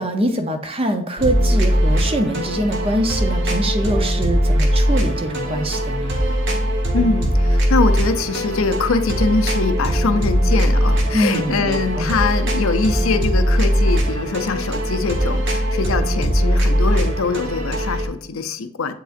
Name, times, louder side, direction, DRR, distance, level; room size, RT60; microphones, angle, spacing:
voice 1, 0.0-6.2 11.1-12.2, right 1 dB, 25° right, 6 dB, 0.7 m, -23 dB
sound 1, 1.2-18.1, equal, 55° right, 1.3 m, -20 dB
voice 2, 6.9-18.9, left 4 dB, 70° left, 10 dB, 0.5 m, -23 dB
7.8 x 4.9 x 2.5 m, 0.66 s
head